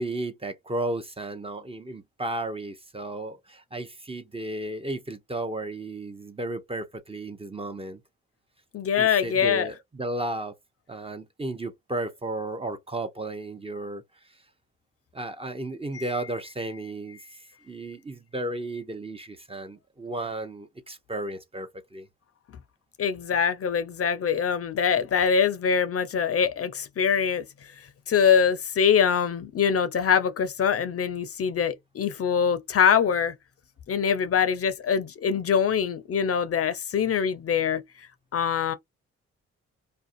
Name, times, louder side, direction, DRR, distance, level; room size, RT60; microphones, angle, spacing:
voice 1, 0.0-8.0 9.0-10.5 10.9-14.0 15.1-17.2 17.6-22.1, right 1 dB, 20° right, 0.6 m, -34 dB
voice 2, 8.7-9.7 15.9-16.1 23.0-27.4 28.1-33.3 33.9-37.8 38.3-38.7, left 7 dB, 50° left, 0.5 m, -23 dB
2.5 x 2.1 x 2.5 m
supercardioid pair, 50°, 29 cm